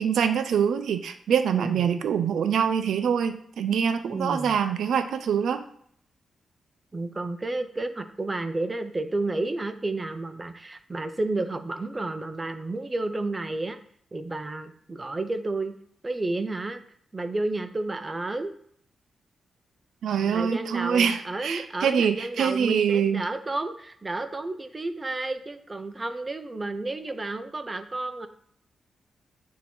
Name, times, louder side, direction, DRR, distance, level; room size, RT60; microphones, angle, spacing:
voice 1, 0.0-5.6 20.0-23.3, right 7 dB, 90° right, 10 dB, 0.4 m, -25 dB
voice 2, 1.5-1.9 4.1-4.6 6.9-13.8 14.1-15.7 16.0-16.8 17.1-18.5 20.2-28.3, right 2 dB, 20° right, 8 dB, 0.5 m, -31 dB
7.9 x 2.8 x 4.3 m, 0.63 s
wide cardioid pair, 120°, 0 cm